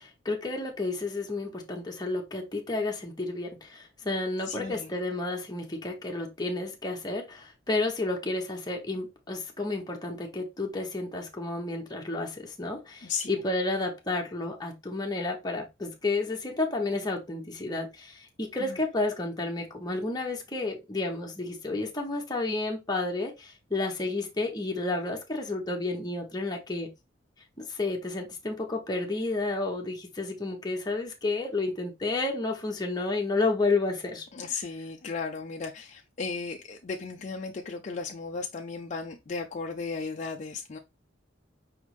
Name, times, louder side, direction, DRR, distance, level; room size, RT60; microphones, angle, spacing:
voice 1, 0.0-26.9 27.6-34.3, left 2 dB, 20° left, 1.0 m, -31 dB
voice 2, 4.5-4.9 13.0-13.3 18.7-18.8 34.3-40.8, left 4 dB, 40° left, 0.4 m, -35 dB
5.1 x 3.4 x 3.0 m
head